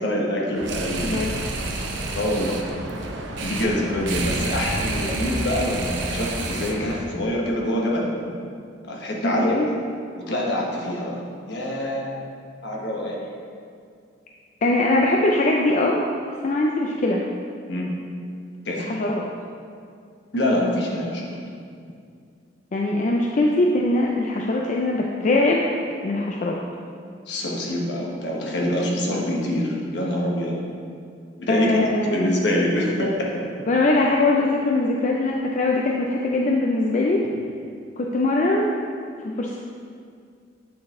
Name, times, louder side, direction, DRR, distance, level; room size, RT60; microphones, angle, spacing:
voice 1, 0.0-1.3 1.7-1.8 2.1-2.6 3.4-8.1 8.9-9.4 10.3-11.2 11.5-12.1 12.6-13.2 17.7-17.9 18.6-18.9 20.3-21.3 27.3-30.6 31.4-31.7 32.1-33.1, left 1 dB, 65° left, -2 dB, 1.1 m, -25 dB
sound 1, 0.5-7.0, right 2 dB, 85° right, 0.6 m, -29 dB
voice 2, 9.2-9.7 14.6-16.0 16.4-17.2 18.8-19.2 22.7-25.6 26.0-26.6 31.5-32.3 33.7-37.2 38.0-38.7 39.4-39.6, left 2 dB, 40° left, -1 dB, 0.4 m, -21 dB
8.6 x 3.9 x 3.7 m, 2.3 s
head